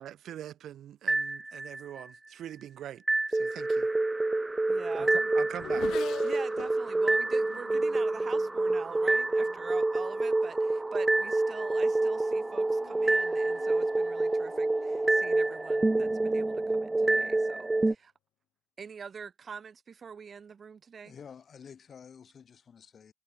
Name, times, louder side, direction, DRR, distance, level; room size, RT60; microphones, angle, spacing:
voice 1, 0.0-3.0 3.3-3.9 5.0-5.9, right 11 dB, 65° right, 0.6 m, -43 dB
sound 1, 1.1-2.0 3.1-17.9, right 2 dB, 10° right, 0.3 m, -27 dB
Race car auto racing / Accelerating revving vroom, 3.9-9.8 10.6-11.0 11.4-17.3, left 12 dB, 85° left, 4.1 m, -49 dB
voice 2, 4.7-5.3 6.2-18.1 18.8-21.1, right 6 dB, 35° right, 1.8 m, -45 dB
voice 3, 21.0-23.1, left 7 dB, 40° left, 3.2 m, -50 dB
cardioid pair, 175°, 0 cm